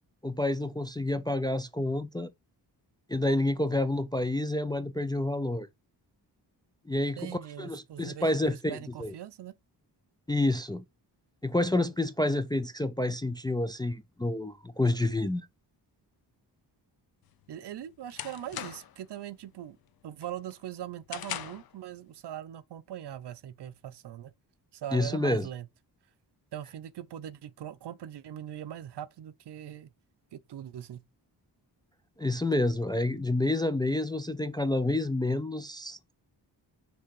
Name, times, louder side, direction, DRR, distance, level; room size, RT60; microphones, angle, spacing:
voice 1, 0.2-2.3 3.1-5.7 6.9-9.1 10.3-10.8 11.4-15.5 24.9-25.5 32.2-36.1, left 2 dB, 10° left, 0.3 m, -29 dB
voice 2, 7.2-9.5 17.5-19.8 20.0-24.3 24.7-25.7 26.5-29.9 30.3-31.0, right 11 dB, 75° right, 0.6 m, -41 dB
sound 1, 17.3-19.1 19.5-19.8 20.2-21.8, left 10 dB, 60° left, 0.6 m, -40 dB
6.3 x 3.3 x 4.6 m
wide cardioid pair, 145°, 42 cm